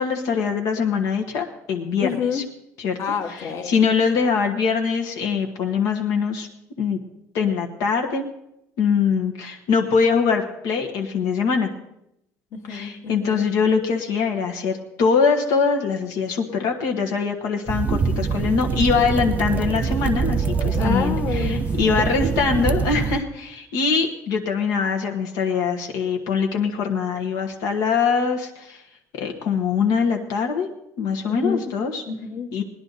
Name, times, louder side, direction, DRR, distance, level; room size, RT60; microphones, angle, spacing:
voice 1, 0.0-2.4 2.8-3.0 3.7-6.5 6.8-7.0 7.3-8.3 8.8-11.7 12.7-28.8 29.1-30.7 31.0-32.0 32.5-32.6, left 5 dB, 75° left, 2 dB, 1.5 m, -23 dB
voice 2, 2.0-2.5 3.0-3.8 12.5-13.5 20.7-22.1 31.3-31.7 32.1-32.5, left 6 dB, 45° left, 4 dB, 1.6 m, -28 dB
sound 1, 17.7-23.2, right 6 dB, 25° right, 0.5 m, -24 dB
19.0 x 11.0 x 4.1 m, 0.81 s
cardioid pair, 155°, 6 cm